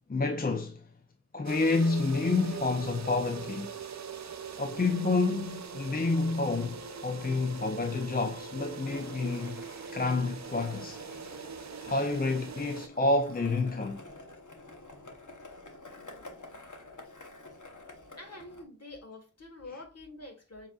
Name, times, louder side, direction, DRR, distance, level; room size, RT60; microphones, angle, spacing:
voice 1, 0.1-0.9 1.3-3.8 4.6-9.7 9.9-11.0 11.8-14.0, left 3 dB, 30° left, 0.5 m, -29 dB
sound 1, 1.5-12.9, right 6 dB, 65° right, 0.5 m, -42 dB
Skateboard, 8.8-18.6, left 2 dB, 75° left, 1.0 m, -49 dB
voice 2, 18.1-20.7, left 2 dB, 55° left, 1.3 m, -46 dB
7.2 x 2.7 x 2.3 m
wide cardioid pair, 40°, 30 cm